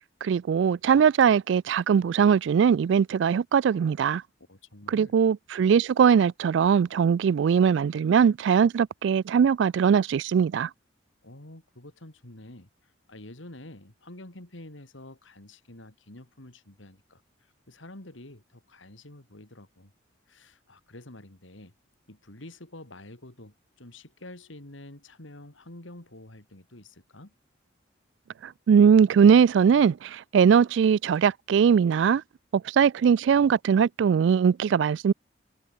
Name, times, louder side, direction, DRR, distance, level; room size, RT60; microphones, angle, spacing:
voice 1, 0.2-4.2 4.9-10.7 28.4-32.2 32.5-35.1, right 7 dB, 65° right, 0.3 m, -21 dB
voice 2, 4.5-5.1 11.2-19.9 20.3-21.7 22.1-27.3, left 1 dB, 75° left, 3.0 m, -48 dB
head